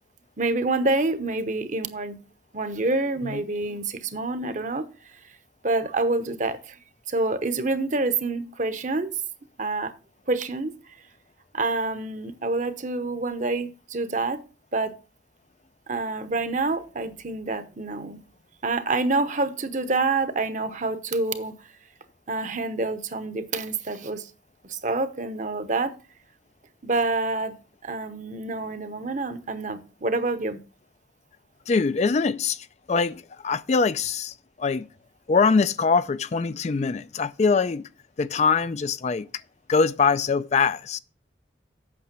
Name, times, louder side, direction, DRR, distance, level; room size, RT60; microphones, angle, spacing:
voice 1, 0.4-2.2 2.5-4.9 5.6-6.8 7.1-9.2 9.6-9.9 10.3-10.7 11.5-14.4 14.7-14.9 15.9-18.2 18.6-21.5 22.3-24.3 24.6-25.9 26.8-27.5 27.8-30.6, right 3 dB, 45° right, 0.9 m, -27 dB
voice 2, 31.7-34.9 35.3-37.8 38.2-39.3 39.7-41.0, left 5 dB, 40° left, 0.4 m, -23 dB
8.5 x 6.2 x 6.0 m
head